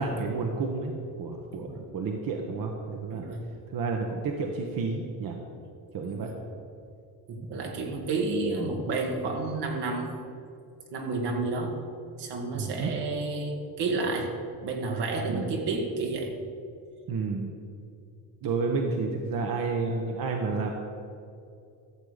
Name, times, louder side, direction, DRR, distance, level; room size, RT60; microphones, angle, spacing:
voice 1, 0.0-3.3 3.7-5.4 5.9-6.3 12.5-12.9 15.3-15.5 17.1-17.5 18.4-20.7, right 4 dB, 60° right, 2 dB, 1.1 m, -30 dB
voice 2, 3.1-3.4 6.1-6.3 7.3-10.2 10.9-11.8 12.2-14.4 14.6-16.3, right 3 dB, 75° right, 1 dB, 1.9 m, -30 dB
13.5 x 6.9 x 5.0 m, 2.6 s
cardioid pair, 90°, 40 cm